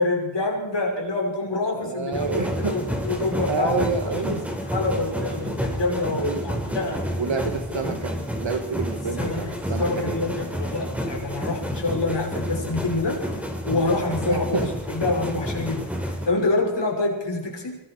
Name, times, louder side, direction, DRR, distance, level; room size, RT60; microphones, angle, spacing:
voice 1, 0.0-3.8 4.7-7.1 9.2-9.5 9.8-13.2 13.6-14.6 14.9-17.8, left 2 dB, 60° left, 0 dB, 6.2 m, -26 dB
voice 2, 1.7-2.8 3.4-4.4 6.2-6.7 7.2-10.2 14.3-14.7, right 5 dB, 65° right, 7 dB, 2.5 m, -29 dB
sound 1, 2.1-16.3, equal, 5° right, 4.7 m, -30 dB
25.0 x 22.5 x 4.9 m, 0.92 s
wide cardioid pair, 70°, 48 cm